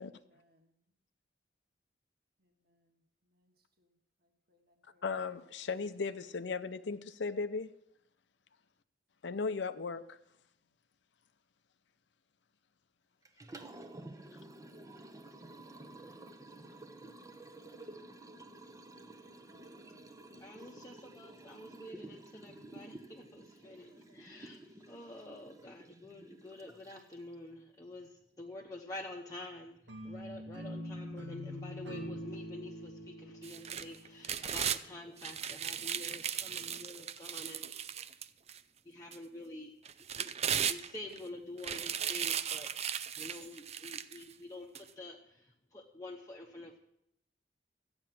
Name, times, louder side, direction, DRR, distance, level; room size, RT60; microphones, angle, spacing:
voice 1, 0.0-0.8 2.4-3.9 4.2-5.1 17.2-20.1 20.6-22.3 22.7-22.8 23.6-24.2 28.3-28.4 42.5-42.7, equal, 55° right, 4 dB, 1.7 m, -70 dB
voice 2, 5.0-7.7 9.2-10.2, left 4 dB, 75° left, 10 dB, 0.6 m, -36 dB
Liquid, 13.3-27.3, right 2 dB, 20° right, 0.8 m, -52 dB
voice 3, 20.4-38.2 38.8-39.7 40.2-42.7 43.2-46.8, left 2 dB, 20° left, -1 dB, 1.0 m, -48 dB
sound 1, 29.9-35.0, equal, 90° right, 1.8 m, -44 dB
sound 2, 33.4-34.8 35.2-38.6 39.1-39.2 39.8-41.2 41.6-44.2 44.7-44.8, right 8 dB, 35° right, 0.4 m, -36 dB
14.0 x 8.8 x 5.9 m, 0.79 s
head